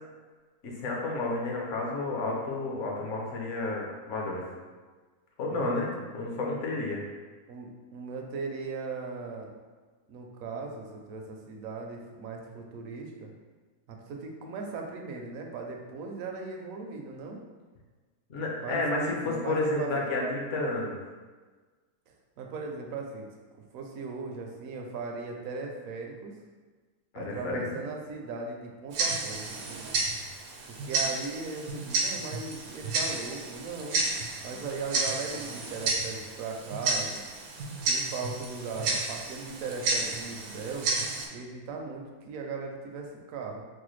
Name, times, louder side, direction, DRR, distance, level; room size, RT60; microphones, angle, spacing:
voice 1, 0.6-4.4 5.4-7.0 18.3-21.0 27.1-27.7, left 2 dB, 60° left, -2 dB, 0.9 m, -31 dB
voice 2, 5.5-6.4 7.5-9.5 10.1-13.3 13.9-17.4 18.6-20.1 22.1-23.3 23.7-26.3 27.1-29.4 29.7-29.9 30.7-34.0 34.4-37.3 37.9-40.9 41.3-43.6, right 4 dB, 70° right, 1 dB, 0.9 m, -38 dB
Tick-tock, 28.9-41.3, right 3 dB, 90° right, 1.2 m, -32 dB
4.7 x 2.1 x 3.1 m, 1.4 s
omnidirectional pair, 1.6 m